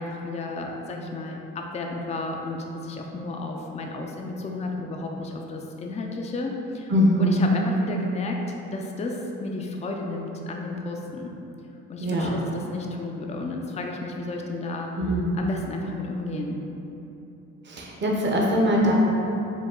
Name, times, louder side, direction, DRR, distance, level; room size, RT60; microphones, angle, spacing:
voice 1, 0.0-6.9 7.2-8.4 8.7-11.4 11.9-14.9 15.4-16.6, left 2 dB, 25° left, 1 dB, 0.4 m, -32 dB
voice 2, 6.9-7.4 12.0-12.3 15.0-15.2 17.7-18.9, equal, 35° right, -2 dB, 0.8 m, -22 dB
5.1 x 2.3 x 3.6 m, 3.0 s
cardioid pair, 90°, 30 cm